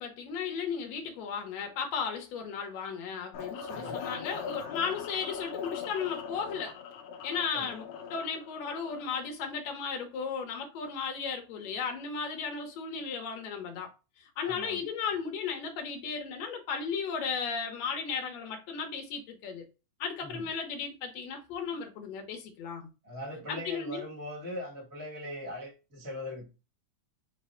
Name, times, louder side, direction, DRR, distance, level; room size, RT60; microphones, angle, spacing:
voice 1, 0.0-6.7 7.2-7.8 8.1-13.9 14.2-19.6 20.0-22.9 23.5-24.0, left 6 dB, 70° left, 1.8 m, -35 dB
sound 1, 3.3-9.3, left 6 dB, 90° left, 1.4 m, -41 dB
voice 2, 3.7-4.0 7.5-7.7 14.4-14.8 20.2-20.5 23.0-26.5, left 1 dB, 20° right, 0.5 m, -40 dB
4.9 x 2.1 x 4.3 m
omnidirectional pair, 3.6 m